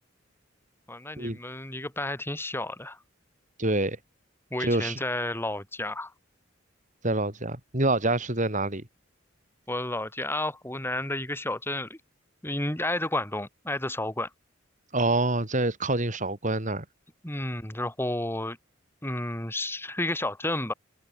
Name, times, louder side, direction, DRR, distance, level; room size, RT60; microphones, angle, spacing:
voice 1, 0.9-3.0 4.5-6.1 9.7-12.0 12.4-14.3 17.2-18.6 19.0-20.7, left 1 dB, 10° left, 4.8 m, -31 dB
voice 2, 3.6-4.0 4.6-5.0 7.0-8.8 14.9-16.8, right 2 dB, 40° right, 5.1 m, -26 dB
head